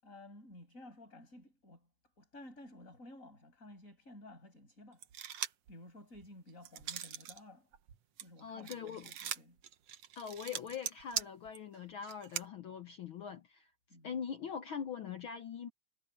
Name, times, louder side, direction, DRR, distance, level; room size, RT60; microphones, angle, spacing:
voice 1, 0.0-5.0 5.3-7.7 8.2-9.6 13.9-14.1, left 1 dB, 25° left, 8.3 m, -54 dB
sound 1, 5.0-5.7 6.2-7.4 7.7-12.5, right 10 dB, 60° right, 2.1 m, -41 dB
voice 2, 8.4-9.1 10.1-13.7 14.0-15.7, left 7 dB, 70° left, 1.2 m, -42 dB
omnidirectional pair, 3.5 m